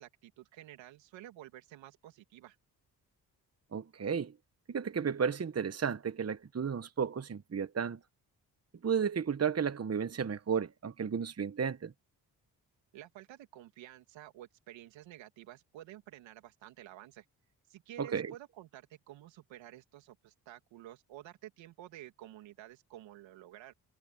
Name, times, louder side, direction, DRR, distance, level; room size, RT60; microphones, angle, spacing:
voice 1, 0.0-2.6 12.9-17.2 17.7-23.7, right 13 dB, 90° right, 2.9 m, -51 dB
voice 2, 3.7-4.3 4.7-8.0 8.8-11.9 18.0-18.3, right 7 dB, 35° right, 1.2 m, -33 dB
supercardioid pair, 55°, 44 cm